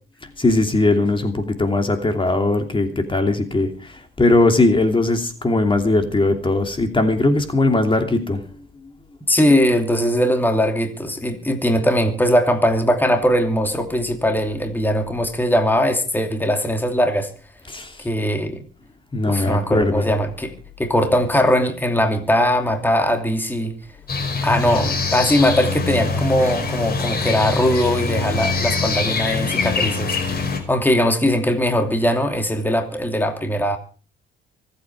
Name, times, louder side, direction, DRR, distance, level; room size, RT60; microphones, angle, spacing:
voice 1, 0.4-8.4 17.7-17.9 19.1-20.1, left 2 dB, 25° left, 6 dB, 2.9 m, -19 dB
voice 2, 9.3-17.3 18.0-18.6 19.2-20.5 20.8-23.7 24.4-33.8, equal, 10° left, 5 dB, 2.7 m, -20 dB
sound 1, 24.1-30.6, left 4 dB, 45° left, 5.2 m, -23 dB
25.0 x 8.8 x 4.8 m, 0.37 s
cardioid pair, 75°, 21 cm